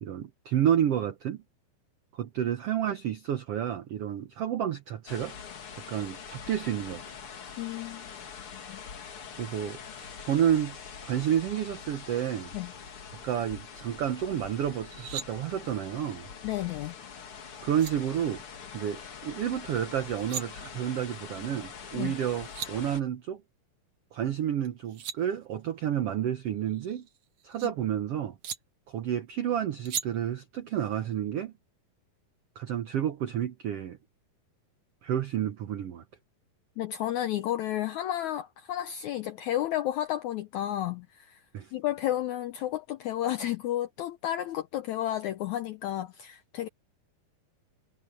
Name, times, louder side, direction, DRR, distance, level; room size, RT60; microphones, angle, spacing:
voice 1, 0.0-1.4 2.2-5.3 5.9-7.0 9.4-10.8 11.0-12.5 13.1-16.3 17.6-18.4 18.7-23.4 24.1-27.1 27.4-28.4 28.9-31.5 32.6-34.0 35.0-36.0 41.5-41.7, right 10 dB, 85° right, 1.3 m, -30 dB
sound 1, 5.1-23.0, left 6 dB, 45° left, 2.3 m, -44 dB
voice 2, 7.6-8.1 8.7-8.8 12.5-12.7 16.4-16.9 21.9-22.1 27.6-27.7 36.8-41.4 41.7-46.7, left 12 dB, 80° left, 1.7 m, -32 dB
sound 2, 14.8-15.3 17.3-17.4 17.7-17.9 20.0-20.4 22.1-22.2 22.4-22.7 24.6-25.2 26.7-27.7 28.4-28.6 29.9-30.1, right 9 dB, 60° right, 2.6 m, -37 dB
omnidirectional pair, 4.1 m